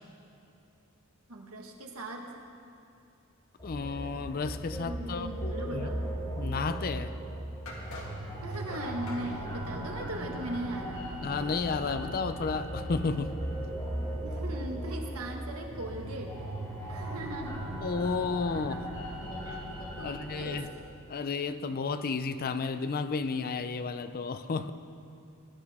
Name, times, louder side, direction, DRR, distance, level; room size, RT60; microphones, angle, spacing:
voice 1, 1.3-2.4 4.7-6.0 8.4-11.1 14.2-16.4 16.9-17.6 18.7-18.8 19.4-19.6 20.0-20.7, right 1 dB, 85° right, 1 dB, 1.5 m, -39 dB
voice 2, 3.6-5.9 6.4-7.2 11.2-13.4 17.8-18.8 20.0-20.7 21.1-24.7, left 4 dB, 45° left, 11 dB, 0.5 m, -32 dB
sound 1, 3.6-20.6, right 1 dB, 20° left, 3.3 m, -37 dB
sound 2, 7.7-9.3, left 1 dB, 70° left, 2.1 m, -44 dB
18.5 x 10.5 x 3.6 m, 2.7 s
head